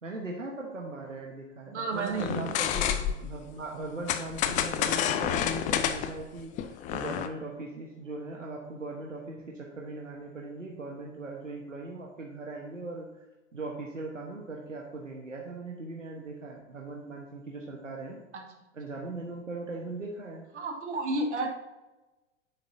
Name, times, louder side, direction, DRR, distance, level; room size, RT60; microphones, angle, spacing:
voice 1, 0.0-13.1 13.5-18.2 18.7-20.5, right 2 dB, 85° right, -1 dB, 1.3 m, -39 dB
voice 2, 1.7-2.4 2.9-3.0 20.5-21.5, right 2 dB, 65° right, 3 dB, 1.6 m, -31 dB
sound 1, 2.1-3.4 4.1-7.3, left 10 dB, 20° left, 0.5 m, -29 dB
10.5 x 7.9 x 2.8 m, 1.0 s
figure-of-eight pair, 90°, 37 cm